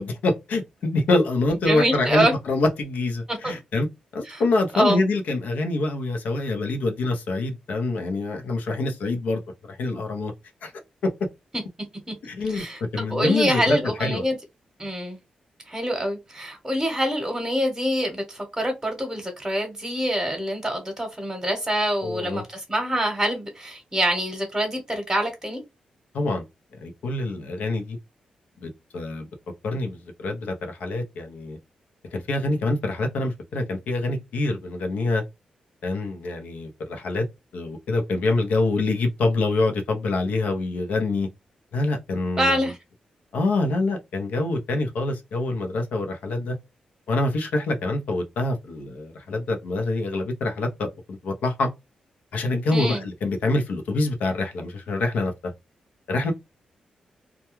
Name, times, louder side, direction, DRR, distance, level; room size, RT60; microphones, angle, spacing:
voice 1, 0.0-3.9 4.1-9.4 9.7-10.3 10.6-10.7 11.0-11.1 12.2-12.6 12.9-14.2 22.0-22.4 26.1-26.4 26.8-28.0 28.6-29.3 29.6-31.6 32.1-35.2 35.8-37.3 37.5-41.3 41.7-42.7 43.3-46.6 47.1-51.7 52.3-55.5 56.1-56.3, left 2 dB, 85° left, 0.7 m, -25 dB
voice 2, 1.7-2.3 3.4-3.5 4.3-4.4 4.7-5.0 12.5-14.4 14.8-15.2 15.7-25.6 42.4-42.8 52.7-53.0, equal, 10° right, 1.0 m, -25 dB
2.3 x 2.2 x 3.0 m
cardioid pair, 70°, 2 cm